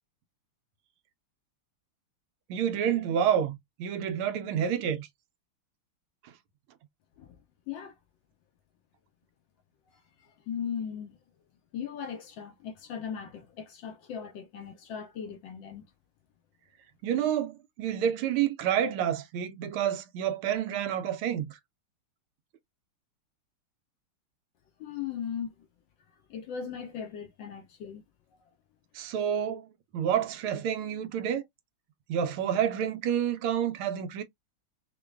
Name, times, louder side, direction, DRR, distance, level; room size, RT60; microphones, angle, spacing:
voice 1, 2.5-5.1 6.2-6.3 17.0-21.6 28.9-29.7 29.9-31.4 32.1-34.2, right 9 dB, 75° right, 1.5 m, -29 dB
voice 2, 10.2-11.2 11.7-15.9 24.8-25.5 26.3-28.0, left 7 dB, 75° left, 1.2 m, -38 dB
5.1 x 2.2 x 2.2 m
omnidirectional pair, 2.4 m